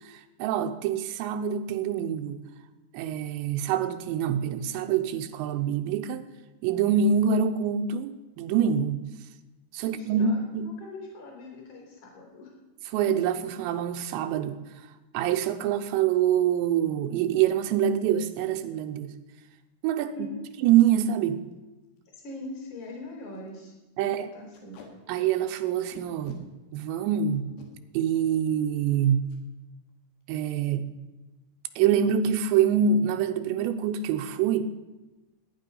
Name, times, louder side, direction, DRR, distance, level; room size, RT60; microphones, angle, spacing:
voice 1, 0.4-2.4 2.9-6.3 6.6-9.0 9.7-10.7 12.9-14.6 15.1-19.1 19.8-20.3 20.6-21.4 24.0-24.3 25.1-26.4 26.7-27.5 27.9-29.3 30.3-30.9 31.8-34.6, right 8 dB, 85° right, 8 dB, 3.0 m, -25 dB
voice 2, 9.8-12.5 20.1-20.5 22.2-23.7 24.0-24.8, left 2 dB, 45° left, -1 dB, 4.9 m, -42 dB
Packing tape duct tape, 20.9-21.1 21.5-21.6 21.8-22.0 22.5-22.6 22.8-23.0 23.3-23.5 24.5-24.9 25.9-26.4 27.4-27.7 29.2-29.4 29.8-30.0 30.2-30.6, left 5 dB, 70° left, 3.8 m, -48 dB
18.0 x 10.0 x 5.4 m, 1.1 s
omnidirectional pair, 5.1 m